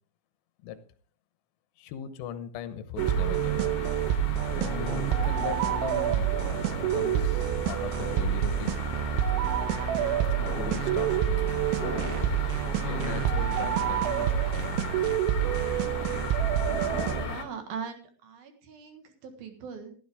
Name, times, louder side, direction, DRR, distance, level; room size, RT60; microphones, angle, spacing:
voice 1, 1.8-3.6 4.6-6.2 6.7-8.8 10.4-11.7 12.1-12.3 12.8-14.7, left 8 dB, 75° left, 11 dB, 3.4 m, -39 dB
sound 1, 3.0-17.5, left 5 dB, 50° left, 3.5 m, -37 dB
sound 2, 3.0-17.3, right 10 dB, 85° right, 3.6 m, -27 dB
voice 2, 17.1-20.0, right 6 dB, 65° right, 6 dB, 2.7 m, -40 dB
14.5 x 13.0 x 3.5 m, 0.41 s
omnidirectional pair, 5.8 m